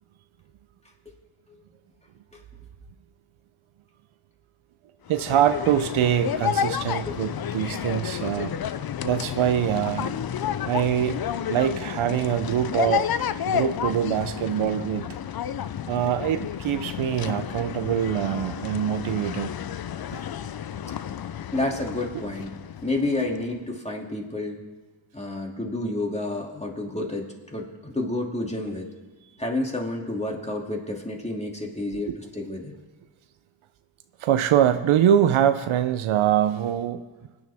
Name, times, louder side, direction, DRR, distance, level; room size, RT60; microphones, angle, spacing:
sound 1, 5.1-23.5, left 9 dB, 50° left, 0.6 m, -31 dB
voice 1, 5.1-8.5 9.0-10.1 10.7-11.2 11.5-13.1 13.4-15.1 15.9-19.5 20.1-20.2 22.1-22.2 31.9-32.1 34.2-37.0, right 10 dB, 85° right, 10 dB, 0.6 m, -24 dB
voice 2, 21.5-22.5 22.8-24.6 25.1-28.9 29.4-32.7, left 2 dB, 15° left, 0 dB, 2.5 m, -30 dB
22.0 x 9.9 x 3.5 m, 1.2 s
cardioid pair, 65°, 47 cm